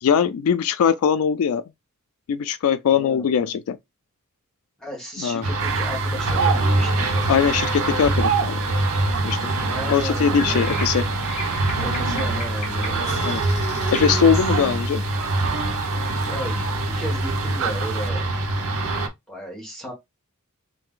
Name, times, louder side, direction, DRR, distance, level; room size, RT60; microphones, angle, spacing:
voice 1, 0.0-1.6 2.3-3.8 5.2-5.4 7.3-8.6 9.2-9.5 9.9-11.0 13.2-13.4 13.9-15.0, left 7 dB, 75° left, 0.3 m, -21 dB
voice 2, 2.9-3.3 4.8-7.6 9.7-10.6 11.8-13.4 16.2-18.3 19.3-19.9, equal, 5° left, 1.7 m, -35 dB
sound 1, 5.4-19.1, right 2 dB, 90° right, 0.8 m, -24 dB
sound 2, 5.6-18.1, right 7 dB, 60° right, 0.5 m, -32 dB
sound 3, 7.2-16.5, left 3 dB, 30° left, 1.0 m, -40 dB
3.2 x 2.6 x 3.7 m
head